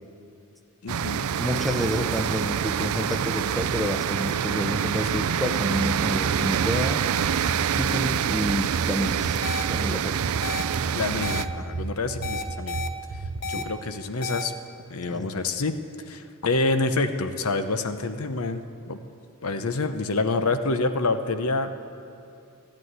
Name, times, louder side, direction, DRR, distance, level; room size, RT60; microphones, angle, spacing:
voice 1, 0.8-1.3 5.1-5.2 10.9-12.8 13.4-14.5 14.9-15.7 16.1-19.0 19.4-21.7, left 3 dB, 85° left, 9 dB, 0.8 m, -27 dB
sound 1, 0.9-11.5, right 8 dB, 80° right, 0.4 m, -26 dB
voice 2, 1.4-7.0 7.7-9.4 9.7-10.2 13.5-13.7 15.1-15.3, equal, ahead, 6 dB, 0.7 m, -29 dB
sound 2, 5.7-13.4, right 3 dB, 60° right, 0.8 m, -33 dB
sound 3, 9.4-9.6 10.4-10.6 11.2-11.4 12.2-12.9 13.4-13.6 14.2-14.4, left 3 dB, 50° left, 0.8 m, -31 dB
13.0 x 10.5 x 9.5 m, 2.6 s
head